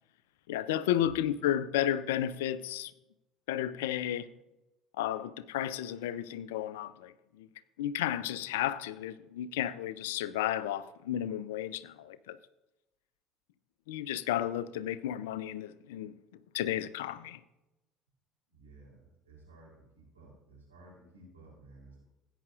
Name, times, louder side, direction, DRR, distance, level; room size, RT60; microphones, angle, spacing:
voice 1, 0.5-2.9 3.5-4.3 5.0-7.1 7.4-7.5 7.8-12.4 13.9-16.1 16.5-17.4, left 11 dB, 70° left, 0.4 m, -33 dB
voice 2, 18.5-22.0, right 2 dB, 85° right, 3.4 m, -55 dB
16.5 x 9.1 x 2.5 m
figure-of-eight pair, 60°, 0 cm